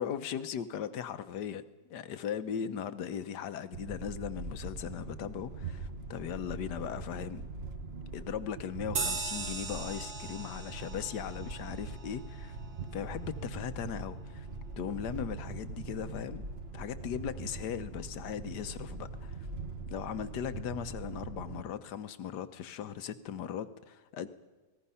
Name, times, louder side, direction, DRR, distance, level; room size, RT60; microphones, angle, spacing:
voice 1, 0.0-1.6 1.9-7.4 8.1-12.6 12.9-14.5 14.8-16.4 16.7-19.5 19.9-24.3, left 9 dB, 80° left, 12 dB, 1.5 m, -38 dB
sound 1, 3.7-21.6, right 3 dB, 40° right, 1.5 m, -42 dB
sound 2, 9.0-13.9, right 4 dB, 75° right, 2.0 m, -40 dB
28.0 x 19.0 x 5.6 m, 1.2 s
omnidirectional pair, 1.8 m